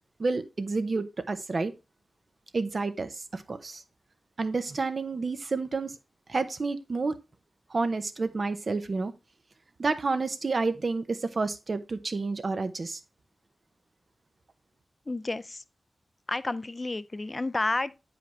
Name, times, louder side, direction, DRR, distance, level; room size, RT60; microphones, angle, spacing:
voice 1, 0.2-1.7 2.5-3.8 4.4-5.9 6.3-7.2 7.7-9.1 9.8-13.0, right 3 dB, 55° right, 0.7 m, -30 dB
voice 2, 15.1-15.6 16.3-17.9, left 2 dB, 35° left, 0.4 m, -30 dB
8.1 x 5.0 x 3.1 m
cardioid pair, 60°, 0 cm